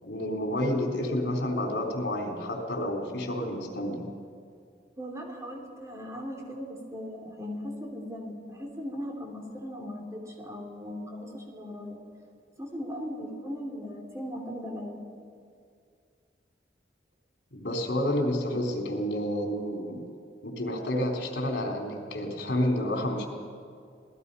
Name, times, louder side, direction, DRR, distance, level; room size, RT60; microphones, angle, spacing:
voice 1, 0.0-4.0 17.5-20.0 20.4-23.3, left 1 dB, 70° left, 1 dB, 3.8 m, -29 dB
voice 2, 5.0-12.0 12.6-15.0, equal, 15° right, 1 dB, 3.1 m, -38 dB
27.0 x 18.0 x 5.6 m, 2.3 s
head